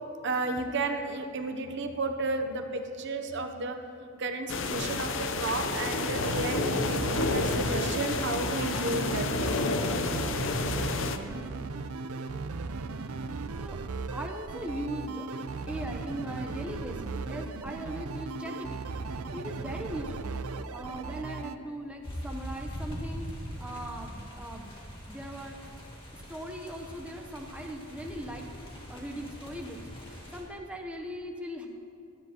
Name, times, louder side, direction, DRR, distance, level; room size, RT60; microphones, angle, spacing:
voice 1, 0.2-9.6, right 2 dB, 55° right, 6 dB, 0.7 m, -33 dB
sound 1, 4.5-11.2, left 3 dB, 60° left, 0.6 m, -30 dB
sound 2, 6.2-21.6, right 4 dB, 85° right, 0.5 m, -37 dB
voice 2, 11.3-11.8 13.6-13.8 14.1-15.3 15.7-18.9 19.3-20.4 20.7-24.7 25.1-25.6 26.3-28.5 28.9-31.7, equal, 5° right, 2 dB, 0.8 m, -39 dB
sound 3, 22.0-30.4, equal, 25° left, 2.0 m, -42 dB
17.0 x 12.5 x 2.9 m, 2.6 s
head